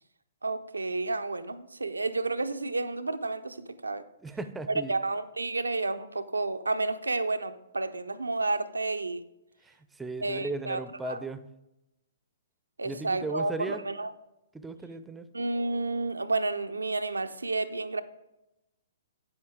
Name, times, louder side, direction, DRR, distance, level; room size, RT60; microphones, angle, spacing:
voice 1, 0.4-4.0 4.9-9.2 10.2-11.2 12.8-14.1 15.3-18.0, right 3 dB, 85° right, 11 dB, 0.5 m, -31 dB
voice 2, 4.2-4.9 9.6-11.5 12.8-13.8 14.5-15.3, right 3 dB, 10° right, 12 dB, 0.5 m, -37 dB
8.9 x 7.9 x 3.7 m, 0.91 s
figure-of-eight pair, 125°, 0 cm